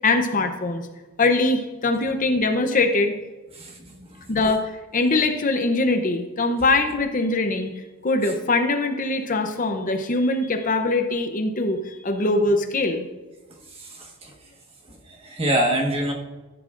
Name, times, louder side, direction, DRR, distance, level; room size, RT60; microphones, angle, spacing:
voice 1, 0.0-0.9 1.2-3.1 4.3-7.7 8.0-13.1, left 2 dB, 35° left, 6 dB, 0.7 m, -22 dB
voice 2, 3.5-4.1 13.8-14.3 15.1-16.1, right 1 dB, 25° right, 0 dB, 1.5 m, -25 dB
14.5 x 11.0 x 2.5 m, 1.2 s
head